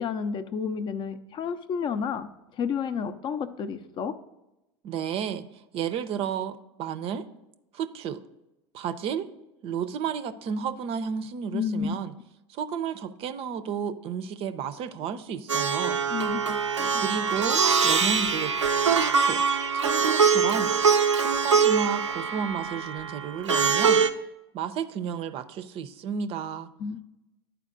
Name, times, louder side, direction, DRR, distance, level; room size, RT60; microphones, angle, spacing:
voice 1, 0.0-2.3 2.6-4.2 11.5-11.9 16.1-17.0 26.8-27.0, left 6 dB, 30° left, 12 dB, 0.5 m, -31 dB
voice 2, 4.8-5.4 5.7-7.2 7.7-8.2 8.7-9.3 9.6-12.1 12.5-16.0 16.9-18.5 18.8-19.4 19.7-20.7 21.1-24.0 24.5-26.7, right 7 dB, 40° right, 10 dB, 0.5 m, -32 dB
Plucked string instrument, 15.5-24.1, right 6 dB, 90° right, 0.4 m, -23 dB
11.5 x 4.6 x 2.5 m, 0.95 s
figure-of-eight pair, 85°, 15 cm